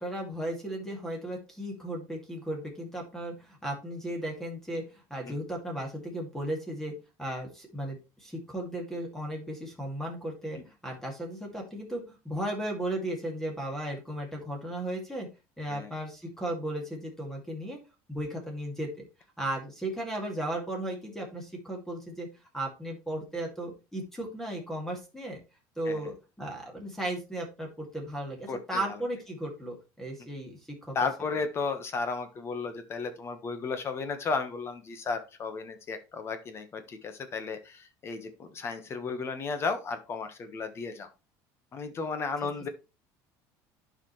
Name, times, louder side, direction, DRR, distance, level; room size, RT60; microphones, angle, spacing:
voice 1, 0.0-6.9 7.2-15.3 15.6-17.8 18.1-19.0 19.4-22.3 22.5-25.4 25.8-30.5 30.8-30.9, right 1 dB, 5° left, 1 dB, 2.3 m, -35 dB
voice 2, 28.5-29.0 30.9-41.1 41.7-42.7, left 4 dB, 35° left, 9 dB, 1.2 m, -34 dB
11.5 x 5.0 x 3.1 m, 0.28 s
cardioid pair, 135°, 8 cm